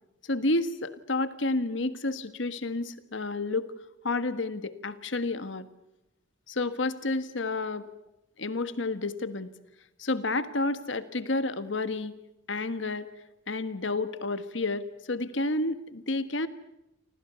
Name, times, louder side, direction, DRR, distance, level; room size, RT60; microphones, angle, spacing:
voice 1, 0.2-3.7 4.0-5.7 6.5-7.9 8.4-9.5 10.0-12.1 12.5-13.1 13.5-16.5, left 2 dB, 70° left, 12 dB, 1.5 m, -30 dB
29.5 x 25.5 x 6.9 m, 0.90 s
head